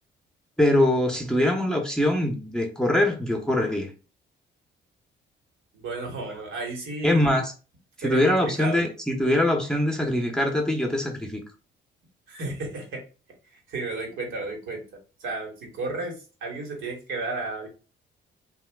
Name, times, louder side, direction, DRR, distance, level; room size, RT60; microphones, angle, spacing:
voice 1, 0.6-3.9 7.0-7.5 8.0-11.4, left 1 dB, 5° left, 0.7 m, -23 dB
voice 2, 5.7-7.4 8.0-8.8 12.3-13.0 13.5-14.8 15.2-17.7, right 2 dB, 75° right, 1.3 m, -33 dB
2.7 x 2.3 x 3.3 m
cardioid pair, 90°, 20 cm